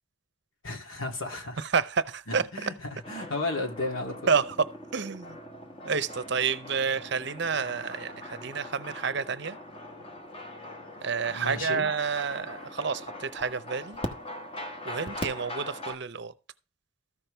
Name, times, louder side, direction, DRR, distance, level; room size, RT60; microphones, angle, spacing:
voice 1, 0.6-1.6 2.3-4.3 11.3-11.9, left 2 dB, 75° left, 2.7 m, -34 dB
voice 2, 1.6-2.7 4.3-4.7 4.9-5.4 5.8-9.6 11.0-14.0 14.9-16.3, right 5 dB, 55° right, 0.6 m, -29 dB
sound 1, 3.0-16.0, left 1 dB, 25° left, 1.2 m, -41 dB
14.0 x 6.0 x 3.3 m
head